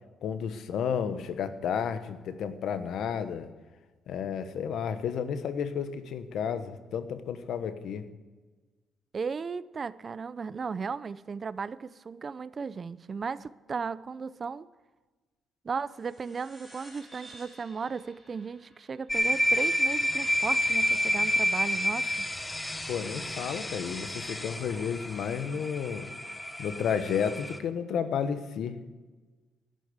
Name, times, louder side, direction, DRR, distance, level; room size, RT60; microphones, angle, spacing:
voice 1, 0.2-3.5 4.1-8.0 22.9-26.1 26.6-28.8, left 7 dB, 75° left, 1.2 m, -32 dB
voice 2, 9.1-14.7 15.6-22.1, right 5 dB, 40° right, 0.5 m, -35 dB
sound 1, 15.9-20.8, right 1 dB, 10° right, 4.6 m, -54 dB
sound 2, 19.1-27.6, equal, 15° left, 1.1 m, -29 dB
12.0 x 10.5 x 8.0 m
cardioid pair, 90°, 0 cm